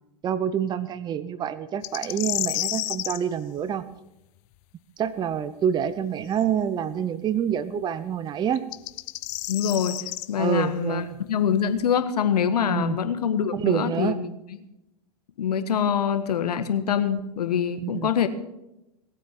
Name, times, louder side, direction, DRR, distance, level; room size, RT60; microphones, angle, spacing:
voice 1, 0.2-3.9 5.0-8.7 10.4-11.2 12.7-13.0 13.5-14.2 17.8-18.1, right 8 dB, 20° right, 15 dB, 0.7 m, -27 dB
sound 1, 1.8-3.2 6.3-6.4 8.6-10.3, left 21 dB, 40° left, 0.7 m, -30 dB
voice 2, 9.5-10.0 10.3-14.3 15.4-18.3, left 8 dB, 75° left, 9 dB, 1.7 m, -24 dB
19.5 x 8.6 x 7.4 m, 0.91 s
hypercardioid pair, 110°, 20 cm